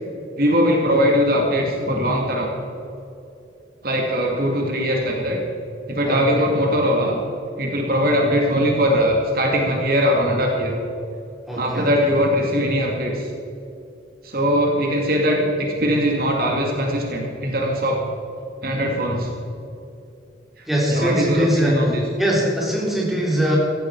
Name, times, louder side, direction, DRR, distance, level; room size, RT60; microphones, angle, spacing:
voice 1, 0.4-2.5 3.8-5.4 5.9-7.2 7.6-10.8 11.5-13.3 14.2-18.0 18.6-19.3 20.9-22.0, equal, 50° right, 0 dB, 2.3 m, -20 dB
voice 2, 6.0-6.5 11.5-11.9 20.7-23.6, equal, ahead, -5 dB, 4.3 m, -21 dB
17.5 x 15.0 x 4.7 m, 2.7 s
head